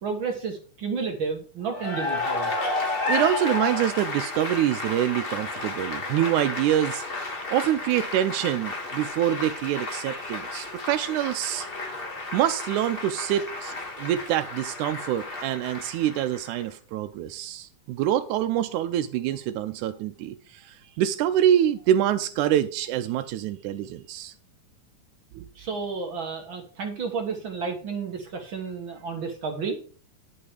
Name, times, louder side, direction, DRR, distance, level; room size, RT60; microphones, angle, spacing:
voice 1, 0.0-2.5 25.6-29.8, right 5 dB, 50° right, 1.8 m, -31 dB
Cheering / Applause, 1.7-16.6, left 3 dB, 30° left, 1.0 m, -32 dB
voice 2, 3.1-7.2 7.5-11.7 12.3-24.3 25.3-25.5, right 11 dB, 85° right, 2.1 m, -26 dB
11.0 x 5.9 x 4.9 m
omnidirectional pair, 3.4 m